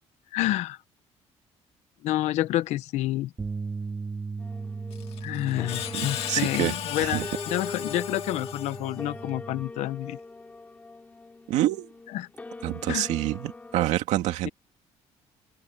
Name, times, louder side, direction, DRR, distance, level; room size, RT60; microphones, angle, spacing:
voice 1, 0.3-0.8 2.0-3.3 5.2-10.2 12.1-12.3 12.9-13.1 14.4-14.5, left 15 dB, 75° left, 0.9 m, -29 dB
sound 1, 3.4-9.6, right 4 dB, 20° right, 2.2 m, -38 dB
sound 2, 4.4-13.9, left 3 dB, 15° left, 3.8 m, -42 dB
Screech, 4.9-9.2, left 11 dB, 55° left, 1.9 m, -36 dB
voice 2, 5.9-6.7 7.0-7.3 11.5-11.9 12.6-14.5, right 14 dB, 90° right, 2.3 m, -27 dB
open air
cardioid pair, 165°, 12 cm